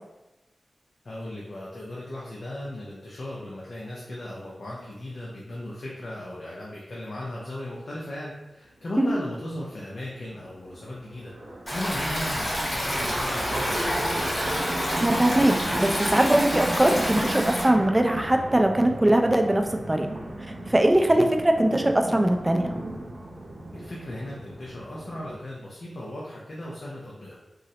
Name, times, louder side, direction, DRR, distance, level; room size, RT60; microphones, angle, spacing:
voice 1, 1.0-14.2 21.0-21.4 23.7-27.4, left 1 dB, 65° left, -5 dB, 0.6 m, -37 dB
sound 1, 8.8-8.9 9.2-9.3 9.5-25.3, right 1 dB, 80° right, 0.6 m, -36 dB
Stream, 11.7-17.7, equal, 35° left, 1.2 m, -28 dB
voice 2, 15.0-19.6 19.9-20.1 20.7-22.7, right 1 dB, 20° right, 4 dB, 0.3 m, -21 dB
3.9 x 2.0 x 2.8 m, 0.99 s
cardioid pair, 60°, 0 cm